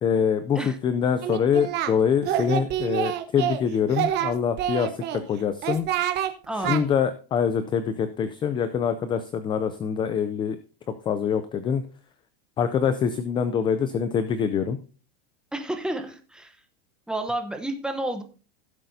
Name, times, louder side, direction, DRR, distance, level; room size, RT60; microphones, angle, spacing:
voice 1, 0.0-5.9 6.5-10.6 11.1-11.8 12.6-14.8, left 7 dB, 15° left, 11 dB, 0.4 m, -25 dB
Singing, 1.2-1.9 2.2-3.6 3.9-5.2 5.6-6.3 6.6-6.8, right 11 dB, 35° right, 1.1 m, -27 dB
voice 2, 6.5-6.9 15.5-16.6 17.1-18.2, right 1 dB, 5° right, 6 dB, 0.9 m, -30 dB
16.5 x 7.7 x 2.7 m, 0.36 s
supercardioid pair, 150°, 30 cm